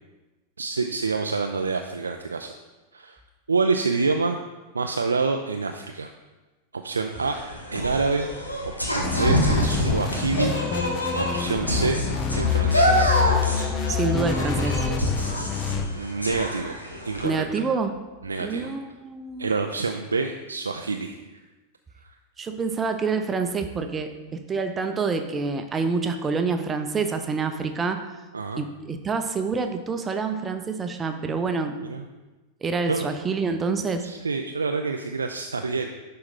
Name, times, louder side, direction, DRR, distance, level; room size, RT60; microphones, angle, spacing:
voice 1, 0.6-2.5 2.9-3.2 3.5-4.4 4.7-6.1 6.7-7.4 7.7-8.3 8.8-12.0 12.3-13.3 15.9-16.8 17.0-17.5 18.2-18.7 19.4-21.4 28.3-28.6 31.8-32.1 32.9-33.1 34.0-35.9, right 4 dB, 75° right, 5 dB, 0.4 m, -27 dB
sound 1, 7.1-17.3, equal, 85° left, 1.2 m, -26 dB
sound 2, 9.0-15.9, left 7 dB, 25° left, 0.7 m, -27 dB
voice 2, 13.9-14.9 17.2-17.9 18.4-19.5 22.4-28.0 28.6-31.8 32.6-34.1, right 4 dB, 20° right, 7 dB, 0.7 m, -27 dB
10.5 x 4.3 x 3.8 m, 1.2 s
figure-of-eight pair, 90°, 0 cm